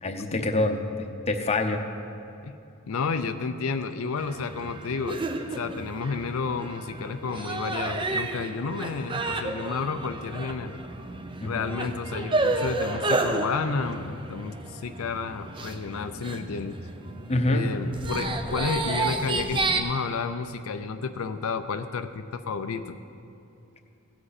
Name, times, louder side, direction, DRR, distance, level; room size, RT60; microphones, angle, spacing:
voice 1, 0.0-1.8 11.4-11.6 17.3-17.7, left 2 dB, 30° left, 5 dB, 0.7 m, -26 dB
voice 2, 2.9-5.2 5.6-10.8 11.4-16.8 17.5-23.0, left 4 dB, 90° left, 8 dB, 0.5 m, -31 dB
sound 1, 4.2-19.8, right 2 dB, 25° right, 0.6 m, -31 dB
17.0 x 7.8 x 4.1 m, 2.7 s
head